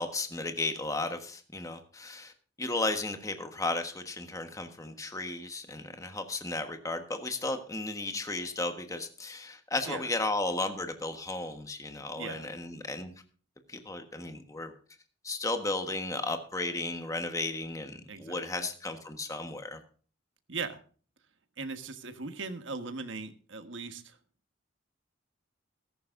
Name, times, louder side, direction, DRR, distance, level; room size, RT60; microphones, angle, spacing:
voice 1, 0.0-2.3 2.6-13.1 13.7-14.7 15.2-19.8, left 2 dB, 15° left, 6 dB, 1.4 m, -34 dB
voice 2, 12.2-12.5 18.1-18.7 20.5-20.8 21.6-24.2, right 4 dB, 75° right, 8 dB, 1.4 m, -39 dB
15.0 x 14.0 x 2.6 m, 0.41 s
head